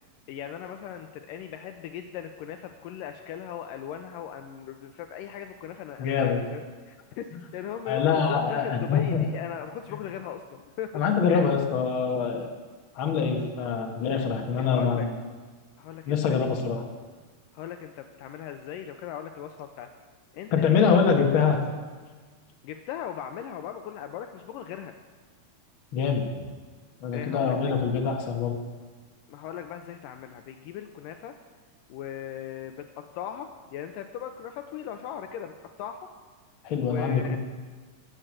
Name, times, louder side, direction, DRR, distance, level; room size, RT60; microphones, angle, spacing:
voice 1, 0.3-11.0 11.3-11.5 14.6-15.1 15.8-16.7 17.5-19.9 20.3-20.6 20.9-21.1 22.6-25.0 27.1-27.6 29.3-31.4 31.9-35.5 35.8-36.1 36.8-37.4, left 9 dB, 80° left, 7 dB, 2.1 m, -38 dB
voice 2, 6.0-6.4 7.9-9.2 10.9-12.5 13.0-15.1 16.1-16.8 20.5-21.6 25.9-26.4 27.0-28.5 36.6-37.4, left 6 dB, 50° left, 2 dB, 1.7 m, -24 dB
16.0 x 7.8 x 7.6 m, 1.4 s
omnidirectional pair, 4.2 m